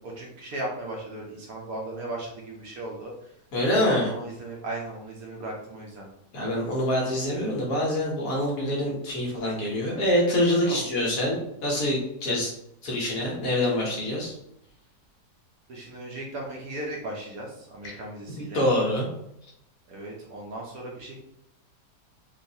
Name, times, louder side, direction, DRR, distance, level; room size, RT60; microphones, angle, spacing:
voice 1, 0.0-3.1 3.7-6.1 10.5-10.8 12.2-12.4 15.7-18.6 19.9-21.2, right 2 dB, 65° right, -2 dB, 1.0 m, -37 dB
voice 2, 3.5-4.1 6.3-12.5 12.8-14.3 17.8-18.0 18.4-19.1, left 1 dB, 60° left, -3 dB, 1.2 m, -25 dB
3.8 x 2.5 x 2.6 m, 0.81 s
omnidirectional pair, 1.9 m